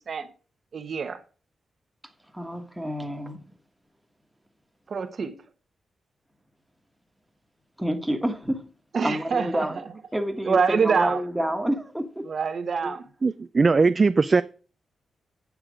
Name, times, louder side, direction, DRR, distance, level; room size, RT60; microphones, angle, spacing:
voice 1, 0.7-1.2 4.9-5.3 8.9-9.8 10.4-11.2 12.3-13.0, right 5 dB, 50° right, 0.9 m, -25 dB
voice 2, 2.3-3.5 7.8-8.7 9.0-9.8 10.1-12.3 12.8-13.0, equal, 5° right, 1.3 m, -29 dB
voice 3, 13.2-14.4, right 4 dB, 35° right, 0.3 m, -19 dB
8.2 x 6.1 x 4.9 m
wide cardioid pair, 120°, 0 cm